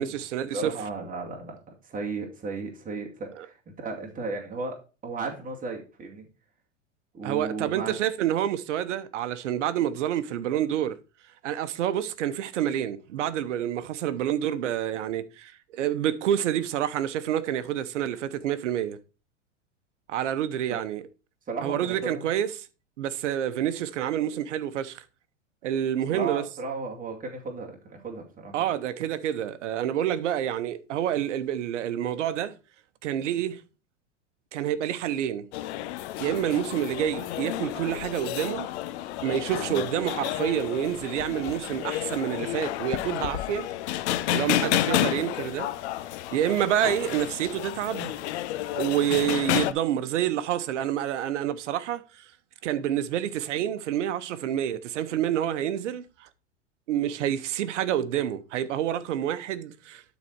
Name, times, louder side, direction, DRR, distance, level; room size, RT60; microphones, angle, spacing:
voice 1, 0.0-0.7 3.4-3.5 7.2-11.0 11.4-19.0 20.1-21.0 21.6-22.5 23.0-25.0 25.6-26.4 28.5-32.5 33.0-33.6 34.5-35.5 36.2-38.7 39.2-43.7 44.3-45.7 46.3-48.2 48.7-52.3 52.6-56.3 56.9-60.0, right 10 dB, 70° right, 1.0 m, -28 dB
voice 2, 0.5-6.3 7.1-8.0 20.7-20.8 21.5-22.3 26.1-28.6 39.6-39.9 44.4-44.7, right 4 dB, 20° right, 2.3 m, -35 dB
sound 1, 35.5-49.7, left 14 dB, 60° left, 0.8 m, -31 dB
12.0 x 4.2 x 4.5 m
hypercardioid pair, 95°, 37 cm